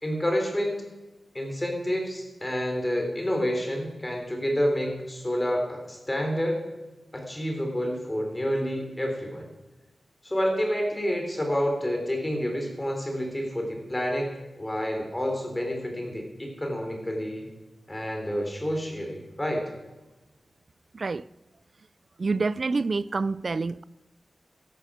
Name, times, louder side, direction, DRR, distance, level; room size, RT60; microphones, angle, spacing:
voice 1, 0.0-0.8 1.3-6.6 7.1-9.5 10.2-14.3 14.6-17.5 17.9-19.6, equal, 20° left, 3.6 m, -29 dB
voice 2, 20.9-21.3 22.2-23.8, right 3 dB, 55° right, 0.3 m, -27 dB
13.5 x 11.5 x 5.0 m
cardioid pair, 55°, 0 cm